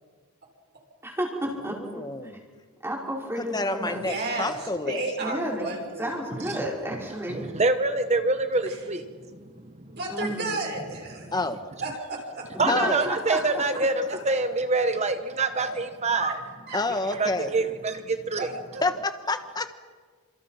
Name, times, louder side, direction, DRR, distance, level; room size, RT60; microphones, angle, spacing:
voice 1, 1.0-2.3 2.8-4.0 5.2-5.7 6.0-7.5 10.1-10.6 12.5-13.6, equal, 10° right, -2 dB, 5.4 m, -32 dB
voice 2, 1.7-2.4 3.4-5.0 11.3-11.7 12.7-13.1 16.7-17.5 18.8-19.7, left 2 dB, 20° left, 8 dB, 1.4 m, -28 dB
voice 3, 4.0-6.1 8.7-8.8 9.9-11.4 11.8-12.5 15.5-15.7 16.2-16.4 16.7-16.8 18.4-18.8, right 2 dB, 50° right, -1 dB, 6.4 m, -32 dB
voice 4, 7.3-9.9 11.2-11.3 12.6-16.4 17.2-18.5, right 3 dB, 30° right, 8 dB, 1.2 m, -26 dB
30.0 x 27.0 x 5.9 m, 1.5 s
head